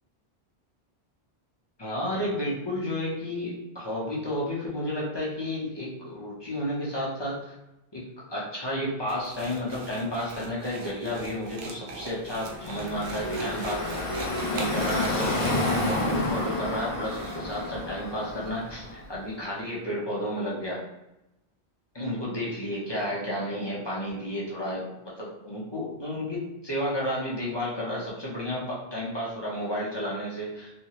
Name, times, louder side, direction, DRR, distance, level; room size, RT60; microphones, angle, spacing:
voice 1, 1.8-7.5 7.9-8.0 8.3-13.8 14.5-20.8 21.9-30.7, equal, 25° left, -6 dB, 0.7 m, -32 dB
sound 1, 9.1-17.7, right 3 dB, 80° right, 0.8 m, -41 dB
Car passing by / Traffic noise roadway noise, 12.2-19.1, left 2 dB, 50° left, 0.4 m, -30 dB
3.2 x 2.2 x 2.9 m, 0.91 s
omnidirectional pair, 1.1 m